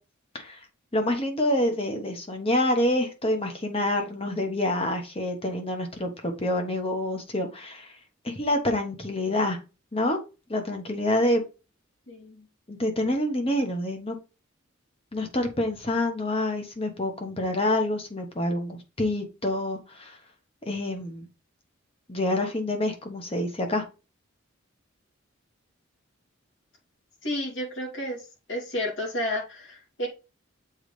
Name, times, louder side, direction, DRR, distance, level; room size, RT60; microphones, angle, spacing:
voice 1, 0.9-7.9 8.2-9.6 9.9-10.2 10.5-11.4 12.7-14.2 15.1-20.2 20.7-21.3 22.1-23.8, left 1 dB, 30° left, 4 dB, 1.2 m, -27 dB
voice 2, 12.1-12.4 27.2-28.2 28.5-30.1, left 1 dB, 60° left, -1 dB, 2.7 m, -31 dB
7.2 x 4.0 x 3.3 m, 0.30 s
head